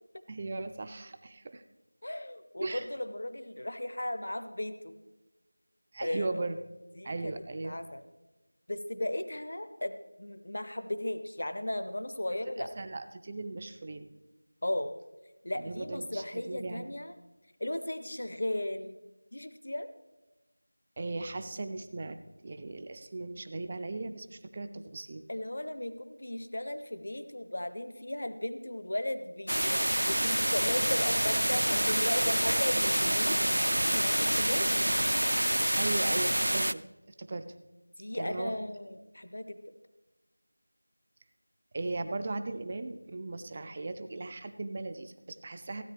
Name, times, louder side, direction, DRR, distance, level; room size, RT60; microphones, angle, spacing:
voice 1, 0.3-1.6 2.6-2.9 5.9-6.6 7.0-7.8 12.6-14.1 15.6-17.0 21.0-22.2 22.4-25.2 35.8-36.8 37.2-37.5 38.1-38.6 41.7-45.8, right 2 dB, 15° right, 9 dB, 0.3 m, -37 dB
voice 2, 2.0-5.0 6.0-6.3 7.0-7.3 7.6-8.0 8.7-12.7 14.6-14.9 15.4-17.1 17.6-19.0 19.3-19.9 25.3-29.8 30.1-33.4 33.9-34.9 38.0-39.6, left 1 dB, 40° left, 10 dB, 0.6 m, -36 dB
sound 1, 29.5-36.7, right 1 dB, 90° right, 0.4 m, -27 dB
16.0 x 9.0 x 3.3 m, 1.1 s
figure-of-eight pair, 180°, 0 cm